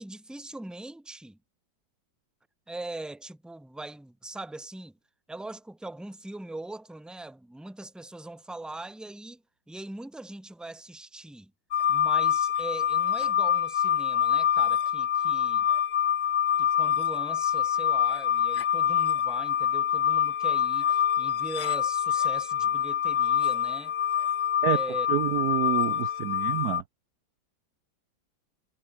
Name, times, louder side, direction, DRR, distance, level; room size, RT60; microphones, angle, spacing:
voice 1, 0.0-1.4 2.7-5.0 5.3-11.5 11.9-15.7 16.6-23.9 24.7-25.1, right 2 dB, ahead, 1.6 m, -41 dB
sound 1, 11.7-26.8, left 9 dB, 80° left, 0.5 m, -25 dB
voice 2, 25.1-26.8, right 12 dB, 60° right, 1.1 m, -28 dB
omnidirectional pair, 2.2 m